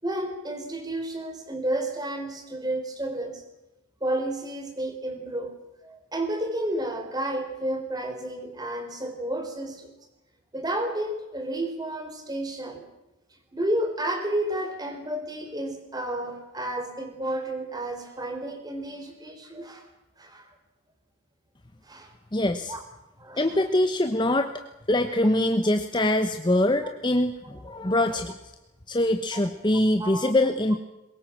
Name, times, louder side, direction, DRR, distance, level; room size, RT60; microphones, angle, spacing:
voice 1, 0.0-3.4 4.0-5.6 5.8-9.9 10.5-12.9 13.5-19.9 20.2-20.5 21.8-22.1 22.7-22.8 23.2-23.6 27.4-27.6 29.3-29.4 30.0-30.3, right 1 dB, 20° right, 6 dB, 4.1 m, -31 dB
voice 2, 22.3-22.7 23.4-24.5 24.9-28.4 28.9-30.8, left 1 dB, 20° left, 7 dB, 1.0 m, -23 dB
23.0 x 21.5 x 7.5 m, 0.97 s
head